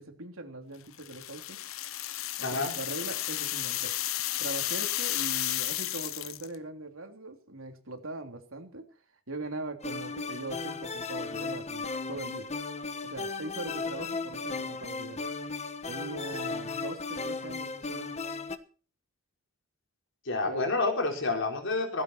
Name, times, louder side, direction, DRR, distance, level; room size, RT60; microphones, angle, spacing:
voice 1, 0.0-1.6 2.4-3.9 4.4-8.9 9.3-12.5 13.0-15.3 15.9-18.3 20.4-20.6, right 2 dB, 85° right, 5 dB, 3.2 m, -41 dB
sound 1, 1.0-6.5, left 14 dB, 80° left, 0.8 m, -33 dB
voice 2, 2.4-2.7 20.2-22.0, left 3 dB, 65° left, 3 dB, 4.8 m, -29 dB
sound 2, 9.8-18.6, left 4 dB, 35° left, 1.3 m, -36 dB
16.5 x 16.0 x 4.5 m, 0.41 s
head